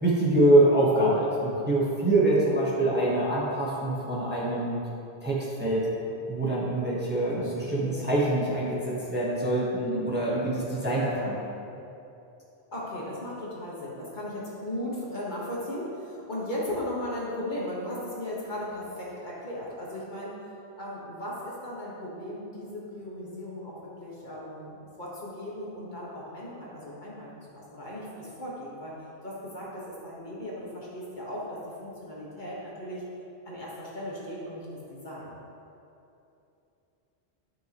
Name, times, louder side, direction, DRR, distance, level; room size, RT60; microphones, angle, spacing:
voice 1, 0.0-4.8 5.2-5.9 6.3-11.4, right 1 dB, 10° right, -7 dB, 1.2 m, -25 dB
voice 2, 7.3-8.1 11.1-11.3 12.7-20.4 20.8-28.9 29.2-33.0 33.4-35.4, left 1 dB, 45° left, -6 dB, 1.6 m, -37 dB
11.5 x 5.9 x 3.0 m, 2.8 s
omnidirectional pair, 1.1 m